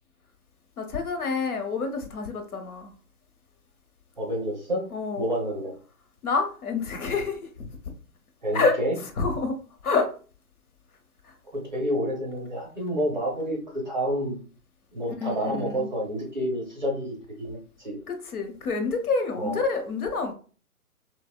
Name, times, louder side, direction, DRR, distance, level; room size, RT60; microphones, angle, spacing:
voice 1, 0.8-2.9 4.9-5.2 6.2-7.7 8.5-8.8 9.2-9.6 9.8-10.1 11.2-11.3 15.2-15.9 18.1-20.3, left 4 dB, 75° left, 0.7 m, -27 dB
voice 2, 4.2-4.8 5.2-5.8 8.4-9.0 11.5-14.4 14.9-18.0 19.3-19.6, equal, 35° right, 0.5 m, -29 dB
2.7 x 2.0 x 2.3 m
hypercardioid pair, 155°, 45 cm